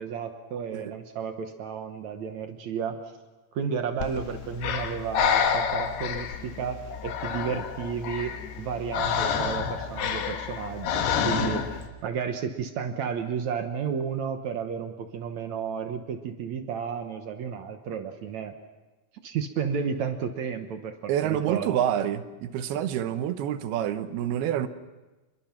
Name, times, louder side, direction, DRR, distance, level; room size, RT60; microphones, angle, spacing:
voice 1, 0.0-3.0 3.5-18.5 19.2-21.8, right 7 dB, 65° right, 2.0 m, -32 dB
Breathing, 4.0-11.9, left 7 dB, 85° left, 3.6 m, -29 dB
voice 2, 21.1-24.7, right 10 dB, 80° right, 3.0 m, -27 dB
27.0 x 22.5 x 6.0 m
omnidirectional pair, 4.5 m